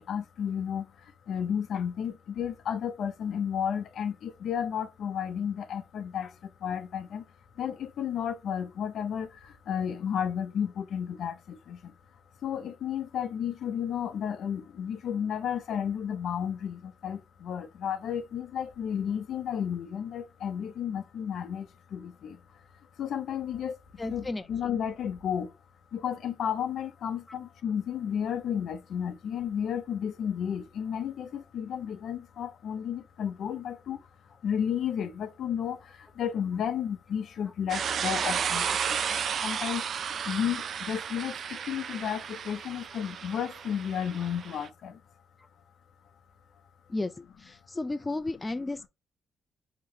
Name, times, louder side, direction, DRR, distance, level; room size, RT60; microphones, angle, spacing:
voice 1, 0.0-7.3 7.6-11.9 12.4-22.4 23.0-25.5 25.9-34.1 34.4-45.0, left 8 dB, 70° left, 0.6 m, -33 dB
voice 2, 24.0-24.4 46.9-47.1 47.5-48.9, left 2 dB, 20° left, 0.4 m, -33 dB
sound 1, 37.7-44.7, right 7 dB, 60° right, 0.3 m, -33 dB
4.7 x 3.0 x 2.7 m
cardioid pair, 85°, 0 cm